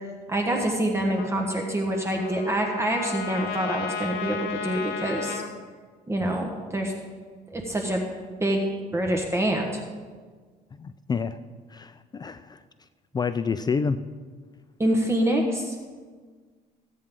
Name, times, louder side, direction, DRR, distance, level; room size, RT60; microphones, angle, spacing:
voice 1, 0.3-5.4 6.1-6.9 7.5-8.0 8.4-8.6 8.9-9.8 14.8-15.7, right 1 dB, 15° right, 1 dB, 1.3 m, -26 dB
Trumpet, 1.1-5.5, left 6 dB, 90° left, 1.0 m, -34 dB
voice 2, 10.8-11.4 11.7-12.6 13.1-14.0, left 5 dB, 25° left, 12 dB, 0.4 m, -28 dB
15.0 x 8.6 x 3.7 m, 1.5 s
cardioid pair, 110°, 17 cm